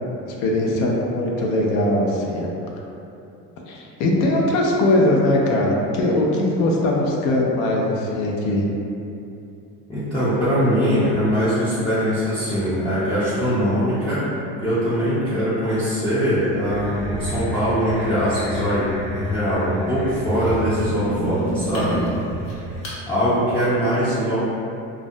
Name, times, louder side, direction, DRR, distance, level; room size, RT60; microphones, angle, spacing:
voice 1, 0.3-2.5 3.7-8.6, left 1 dB, 90° left, -1 dB, 0.5 m, -20 dB
voice 2, 9.9-14.2 14.6-22.0 23.1-24.4, equal, 15° left, -12 dB, 0.4 m, -22 dB
sound 1, 16.7-23.0, right 1 dB, 55° left, 0.7 m, -29 dB
2.3 x 2.1 x 2.6 m, 2.7 s
cardioid pair, 135°, 33 cm